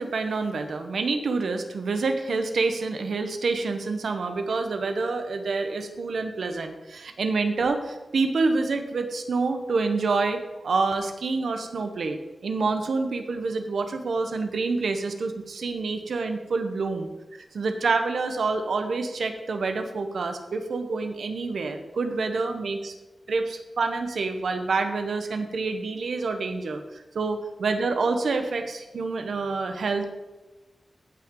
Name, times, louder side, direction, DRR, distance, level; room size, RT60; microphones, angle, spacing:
voice 1, 0.0-22.9 23.3-30.1, right 3 dB, 85° right, 7 dB, 1.0 m, -27 dB
15.5 x 5.8 x 3.8 m, 1.1 s
wide cardioid pair, 140°, 0 cm